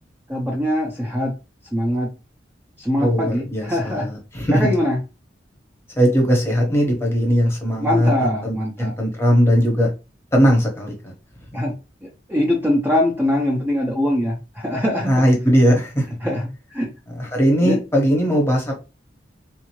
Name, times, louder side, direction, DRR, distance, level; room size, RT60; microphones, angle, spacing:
voice 1, 0.3-1.4 1.7-2.1 2.8-4.1 4.5-5.0 7.8-8.9 11.5-11.7 12.0-15.2 16.2-16.9 17.6-17.8, left 1 dB, 10° right, -2 dB, 0.7 m, -22 dB
voice 2, 3.0-4.7 6.0-9.9 10.3-11.1 11.5-11.6 15.1-16.1 17.1-18.8, equal, 15° left, 0 dB, 1.0 m, -19 dB
3.7 x 2.7 x 3.0 m, 0.29 s
head